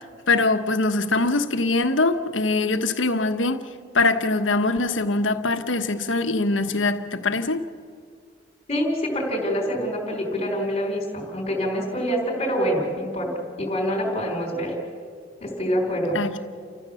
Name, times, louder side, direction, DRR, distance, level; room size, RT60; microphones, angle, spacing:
voice 1, 0.3-3.7 3.9-7.6 16.1-16.3, left 3 dB, 85° left, 1.3 m, -22 dB
voice 2, 8.7-13.3 13.6-14.7 15.4-16.2, equal, 35° left, 4.2 m, -26 dB
30.0 x 14.5 x 7.1 m
head